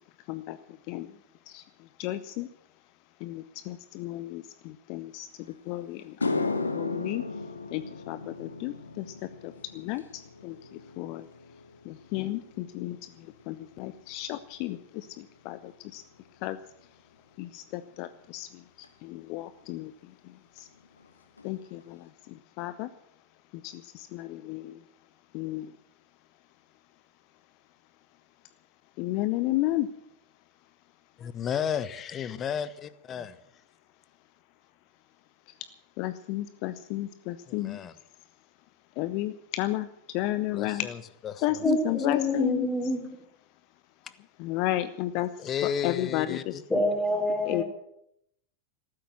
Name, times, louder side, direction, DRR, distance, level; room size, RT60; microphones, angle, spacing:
voice 1, 0.3-1.2 1.5-2.5 3.2-11.3 11.8-16.0 16.4-16.6 17.4-20.7 21.4-22.9 23.5-24.8 25.3-25.8 29.0-29.9 35.5-35.6 36.0-37.8 39.0-40.9 41.4-42.7 44.4-46.8 47.4-47.6, left 15 dB, 45° left, 13 dB, 0.6 m, -33 dB
sound 1, 5.5-5.6 6.0-14.5 14.8-15.2 18.8-18.9 20.6-20.7 21.0-21.1 21.4-21.9, left 3 dB, 80° left, 1.3 m, -36 dB
voice 2, 31.2-33.4 37.5-37.9 40.5-41.0 41.2-41.6 44.0-44.1 45.4-46.6, left 8 dB, 25° left, 15 dB, 1.0 m, -33 dB
voice 3, 41.6-43.0 46.7-47.6, left 1 dB, 10° left, 3 dB, 3.7 m, -27 dB
14.5 x 12.5 x 7.4 m, 0.76 s
figure-of-eight pair, 90°, 0 cm